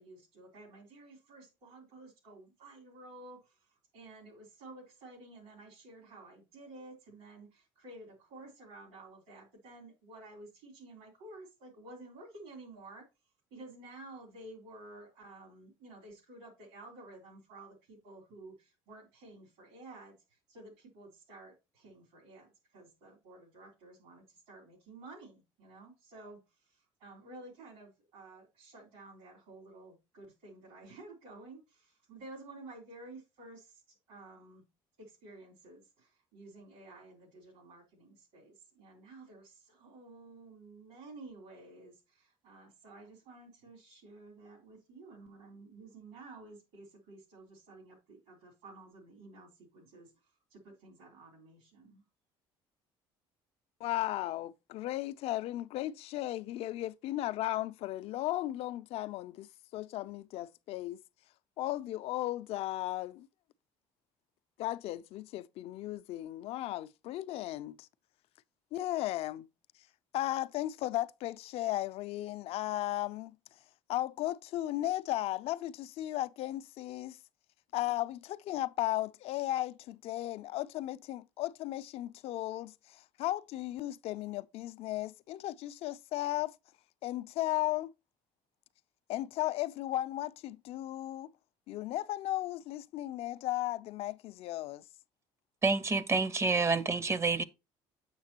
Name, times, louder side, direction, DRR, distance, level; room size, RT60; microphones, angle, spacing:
voice 1, 0.0-3.6 3.9-13.0 13.5-20.2 20.5-26.4 26.7-34.7 35.0-50.1 50.5-52.0, right 2 dB, 80° right, 3.4 m, -52 dB
voice 2, 53.8-61.0 61.6-63.3 64.6-67.9 68.7-69.5 70.1-73.4 73.9-77.2 77.7-86.5 87.0-87.9 89.1-91.3 91.7-94.8, left 15 dB, 65° left, 0.4 m, -35 dB
voice 3, 95.6-97.4, right 3 dB, 25° right, 0.6 m, -28 dB
7.4 x 5.9 x 2.8 m
supercardioid pair, 95°, 11 cm